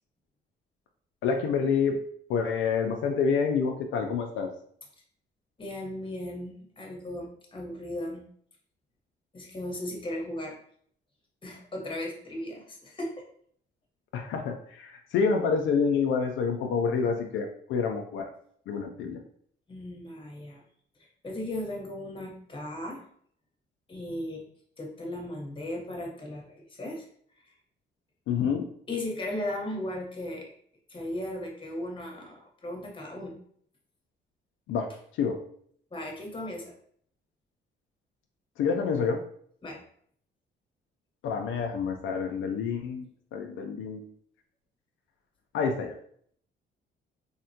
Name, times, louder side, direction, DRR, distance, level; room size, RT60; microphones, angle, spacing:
voice 1, 1.2-2.0 2.3-4.5 14.1-18.3 18.7-19.2 28.3-28.7 34.7-34.9 35.2-35.4 38.6-39.2 41.2-43.0 43.3-44.1 45.5-45.9, left 5 dB, 80° left, 3 dB, 0.4 m, -28 dB
voice 2, 5.6-8.2 9.3-10.6 11.4-13.2 19.7-20.6 21.0-23.0 23.9-24.4 24.8-27.0 28.9-30.5 30.9-33.3 35.9-36.7 39.6-39.8, left 1 dB, 25° left, 0 dB, 0.9 m, -36 dB
3.4 x 2.1 x 2.7 m, 0.62 s
cardioid pair, 90°, 20 cm